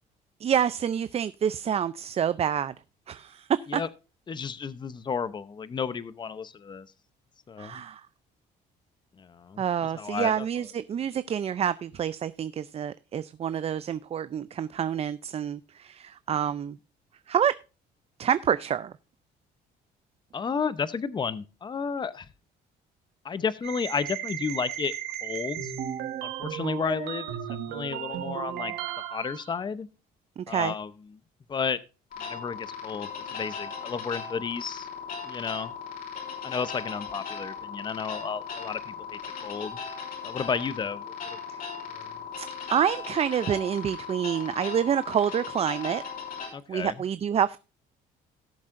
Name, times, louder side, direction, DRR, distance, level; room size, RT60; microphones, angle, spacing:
voice 1, 0.4-2.7 3.1-3.8 7.6-8.0 9.6-16.8 17.3-17.5 18.2-18.9 30.4-30.7 41.5-41.6 42.4-46.0 46.7-47.6, right 8 dB, 35° right, 14 dB, 0.5 m, -27 dB
voice 2, 4.3-6.9 7.5-7.8 9.2-9.6 9.9-10.7 20.3-22.3 23.2-24.9 25.2-25.7 26.2-27.3 27.7-28.7 29.1-29.9 30.5-30.9 31.5-31.8 32.2-34.9 35.2-35.7 36.4-39.8 40.2-41.4 41.9-42.1 46.5-47.0, left 6 dB, 25° left, 16 dB, 0.7 m, -32 dB
sound 1, 23.6-29.5, right 10 dB, 85° right, 1.8 m, -35 dB
sound 2, 32.1-46.5, left 6 dB, 60° left, 5.8 m, -38 dB
18.0 x 7.3 x 2.6 m, 0.31 s
cardioid pair, 110°, 17 cm